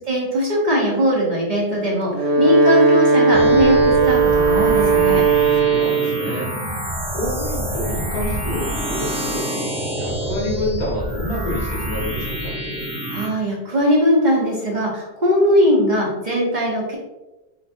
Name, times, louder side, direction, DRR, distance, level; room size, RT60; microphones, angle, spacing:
voice 1, 0.1-5.2 13.1-17.0, equal, 45° right, -4 dB, 1.1 m, -20 dB
Wind instrument woodwind instrument, 2.0-6.2, right 4 dB, 75° right, 1.1 m, -16 dB
sound 1, 3.3-13.3, right 1 dB, 5° right, 0.5 m, -27 dB
voice 2, 5.5-6.5 7.1-9.7 10.0-12.6, left 1 dB, 40° left, -6 dB, 1.4 m, -28 dB
sound 2, 8.2-9.2, right 1 dB, 25° left, 1.6 m, -35 dB
4.5 x 4.0 x 2.6 m, 1.1 s
omnidirectional pair, 1.1 m